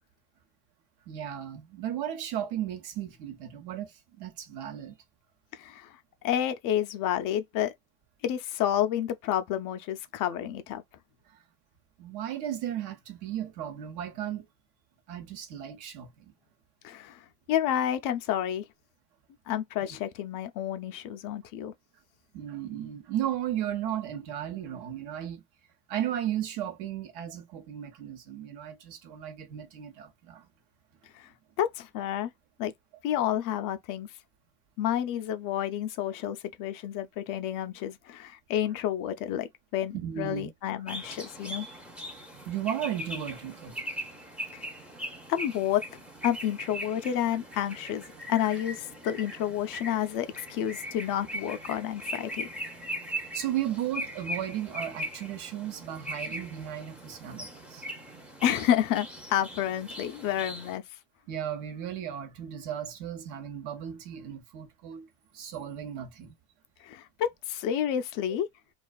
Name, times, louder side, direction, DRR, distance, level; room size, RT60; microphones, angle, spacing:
voice 1, 1.1-5.0 11.3-11.4 12.0-14.4 15.1-16.3 22.3-25.4 25.9-30.5 39.9-40.5 42.4-43.8 53.3-57.8 61.3-65.1 65.3-66.3 68.3-68.4, right 10 dB, 65° right, 0.9 m, -35 dB
voice 2, 5.5-6.0 6.2-7.7 8.2-10.8 16.8-18.6 19.5-21.7 31.1-31.3 31.6-32.3 32.6-32.7 33.0-34.1 34.8-39.5 39.7-41.7 44.5-44.6 45.3-45.8 46.2-48.0 48.3-52.5 58.4-60.8 66.8-68.5, left 10 dB, 50° left, 0.4 m, -30 dB
sound 1, 40.9-60.8, equal, 5° right, 0.5 m, -40 dB
2.4 x 2.3 x 2.3 m
supercardioid pair, 115°, 43 cm